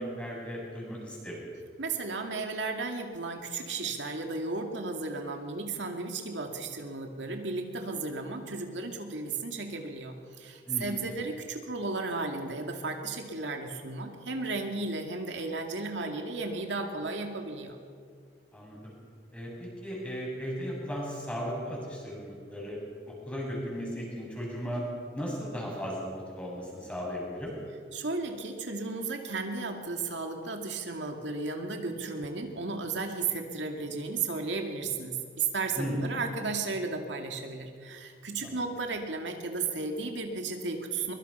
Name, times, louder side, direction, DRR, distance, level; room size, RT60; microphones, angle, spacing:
voice 1, 0.0-1.4 10.7-11.0 18.5-18.9 19.3-22.8 23.1-24.8 25.1-27.5 35.8-36.0 38.4-38.6, equal, 5° left, -3 dB, 7.0 m, -36 dB
voice 2, 1.8-17.8 27.9-41.1, right 3 dB, 80° right, 3 dB, 2.4 m, -34 dB
23.5 x 23.0 x 5.7 m, 2.1 s
head